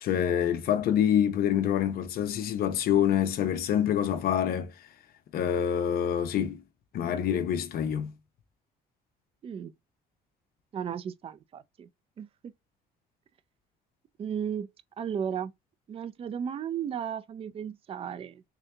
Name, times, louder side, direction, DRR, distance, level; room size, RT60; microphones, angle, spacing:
voice 1, 0.0-4.7 5.3-6.6 6.9-8.1, left 9 dB, 65° left, 0.8 m, -26 dB
voice 2, 10.7-11.9 12.2-12.5 14.2-14.7 15.0-15.5 15.9-18.4, right 8 dB, 35° right, 0.4 m, -35 dB
3.6 x 2.8 x 3.3 m
cardioid pair, 110°, 17 cm